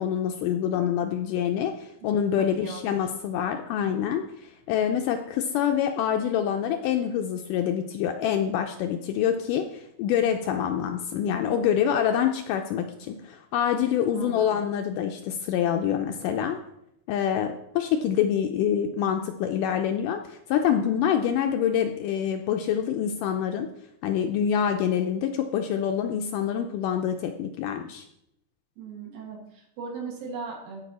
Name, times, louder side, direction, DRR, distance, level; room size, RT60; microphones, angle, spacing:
voice 1, 0.0-16.6 17.1-23.7 24.0-28.1, left 9 dB, 80° left, 5 dB, 2.0 m, -26 dB
voice 2, 2.4-3.0 14.1-14.7 28.8-30.8, right 4 dB, 75° right, -1 dB, 3.8 m, -38 dB
16.0 x 5.3 x 4.2 m, 0.79 s
omnidirectional pair, 4.2 m